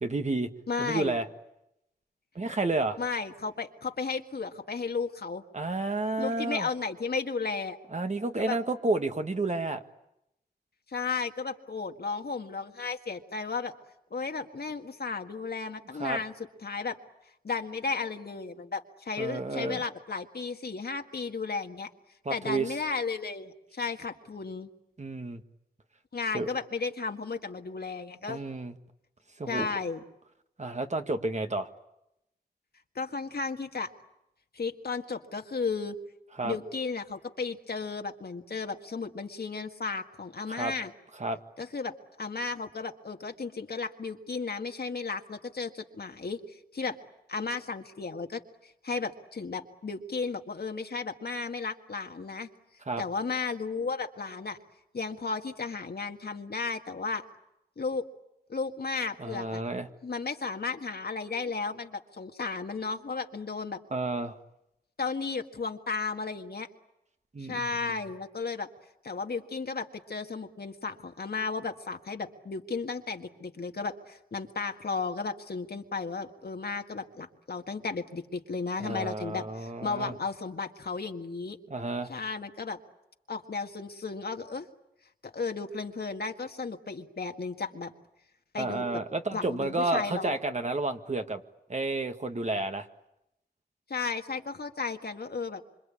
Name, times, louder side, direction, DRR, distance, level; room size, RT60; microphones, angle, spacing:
voice 1, 0.0-0.5 0.8-1.3 2.4-3.0 5.5-6.7 7.9-9.8 16.0-16.2 19.2-19.8 22.3-22.7 25.0-25.4 26.3-26.5 28.3-28.8 29.4-29.7 30.6-31.7 36.4-36.6 40.5-40.7 41.2-41.4 52.9-53.0 59.2-59.9 63.9-64.4 67.3-67.9 78.8-80.1 81.7-82.1 88.6-91.4 91.7-92.9, right 2 dB, 45° right, 7 dB, 1.7 m, -31 dB
voice 2, 0.7-1.2 3.0-5.4 6.2-7.8 8.4-8.6 10.9-13.7 14.1-16.3 16.6-17.0 17.4-21.9 22.3-24.7 26.1-28.4 29.5-30.0 33.0-33.9 34.5-36.0 36.4-40.9 41.6-41.9 42.2-47.0 47.3-52.5 53.0-54.6 54.9-57.2 57.8-58.0 58.5-59.6 60.0-63.8 65.0-66.7 67.5-68.7 69.0-81.6 82.1-82.8 83.3-84.7 85.3-87.9 88.5-89.0 89.3-90.4 93.9-95.6, left 4 dB, 70° left, 5 dB, 1.8 m, -34 dB
26.5 x 26.5 x 8.6 m, 0.85 s
wide cardioid pair, 70°, 17 cm